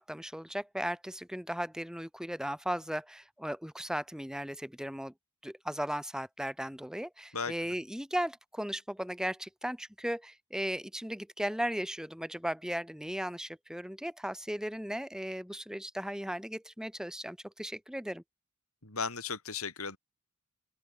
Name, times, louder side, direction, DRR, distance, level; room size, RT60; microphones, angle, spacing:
voice 1, 0.0-5.1 5.4-18.2, equal, 5° right, 3.2 m, -36 dB
voice 2, 18.8-20.0, left 5 dB, 85° left, 7.5 m, -35 dB
open air
head